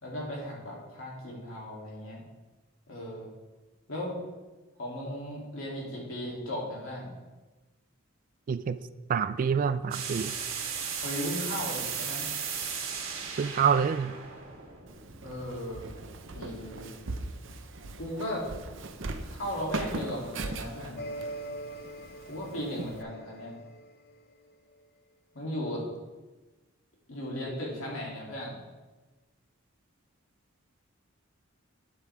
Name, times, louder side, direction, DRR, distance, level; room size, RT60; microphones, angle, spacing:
voice 1, 0.0-2.2 2.9-3.3 3.9-4.2 4.8-7.1 11.0-12.3 15.2-15.8 16.3-16.9 18.0-18.5 19.2-21.0 22.3-23.5 25.3-25.8 27.1-28.6, equal, 75° left, -3 dB, 2.8 m, -36 dB
voice 2, 9.1-10.3 13.4-14.2, right 7 dB, 40° right, 14 dB, 0.3 m, -27 dB
sound 1, 9.9-15.6, right 6 dB, 90° right, 1.5 m, -36 dB
Walk footsteps, 14.9-23.0, right 2 dB, 65° right, 0.7 m, -40 dB
sound 2, 21.0-24.8, right 1 dB, 50° left, 0.5 m, -43 dB
9.1 x 8.3 x 3.5 m, 1.2 s
head